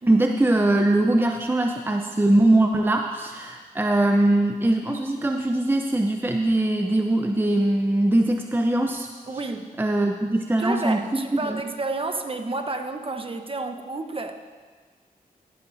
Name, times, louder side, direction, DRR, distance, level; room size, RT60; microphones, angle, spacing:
voice 1, 0.1-9.1 9.8-11.6, right 1 dB, 15° right, 3 dB, 0.6 m, -21 dB
voice 2, 9.3-9.7 10.6-14.3, right 3 dB, 35° right, 5 dB, 1.0 m, -30 dB
14.5 x 11.5 x 2.7 m, 1.5 s
cardioid pair, 60°, 16 cm